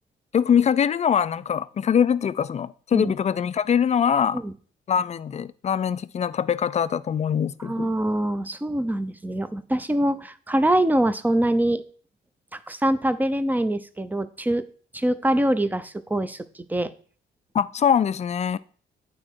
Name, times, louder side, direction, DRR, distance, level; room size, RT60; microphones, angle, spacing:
voice 1, 0.3-4.4 4.9-7.9 17.5-18.6, left 8 dB, 35° left, 0.4 m, -23 dB
voice 2, 7.6-11.8 12.7-14.6 14.9-16.4 16.7-16.9, right 1 dB, 10° right, 0.6 m, -24 dB
8.7 x 4.3 x 4.6 m
cardioid pair, 90°, 20 cm